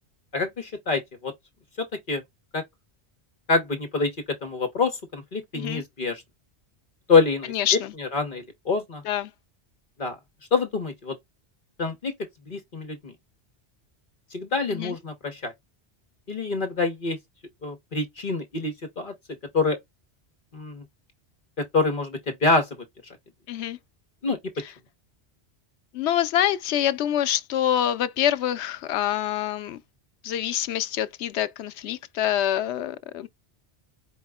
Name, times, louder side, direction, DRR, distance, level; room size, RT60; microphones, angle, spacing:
voice 1, 0.3-1.3 2.1-2.2 2.5-2.6 3.5-4.1 4.4-6.2 7.1-9.0 10.0-10.2 10.5-11.2 11.8-12.1 12.5-13.1 14.3-15.5 16.3-17.2 17.6-19.1 19.5-19.8 20.5-20.8 21.6-22.7 24.2-24.4, left 4 dB, 50° left, 1.1 m, -26 dB
voice 2, 7.5-7.9 9.0-9.3 14.7-14.9 23.5-23.8 25.9-29.8 30.2-33.3, left 11 dB, 85° left, 0.9 m, -26 dB
4.8 x 2.1 x 3.5 m
omnidirectional pair, 1.1 m